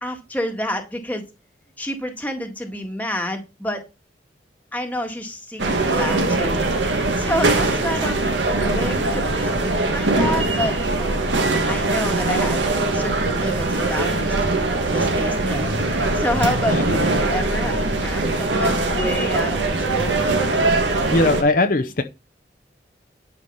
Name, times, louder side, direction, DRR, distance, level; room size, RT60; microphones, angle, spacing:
voice 1, 0.0-1.2 1.8-3.9 4.7-6.6 6.9-11.2 11.5-12.7 12.9-14.6 14.9-20.2, left 1 dB, 10° left, 4 dB, 1.7 m, -29 dB
sound 1, 5.6-21.4, right 2 dB, 90° right, 2.1 m, -21 dB
voice 2, 21.1-22.0, left 2 dB, 50° left, 7 dB, 0.8 m, -19 dB
11.0 x 4.7 x 5.6 m, 0.27 s
head